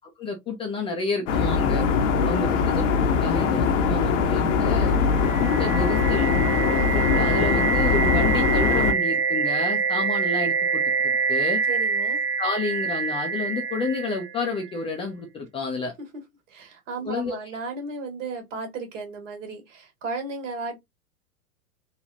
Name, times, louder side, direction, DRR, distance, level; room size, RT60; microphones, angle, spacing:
voice 1, 0.2-1.9 2.3-2.9 3.2-5.0 5.4-6.3 6.7-10.8 11.3-11.6 12.4-15.9 17.0-17.3, left 4 dB, 15° left, 0.4 m, -30 dB
sound 1, 1.3-8.9, left 5 dB, 60° left, 0.8 m, -22 dB
voice 2, 2.1-2.8 11.7-12.2 16.5-20.8, right 3 dB, 60° right, 1.4 m, -35 dB
sound 2, 4.9-14.7, right 5 dB, 30° right, 0.6 m, -26 dB
3.3 x 2.2 x 2.5 m
figure-of-eight pair, 95°, 42 cm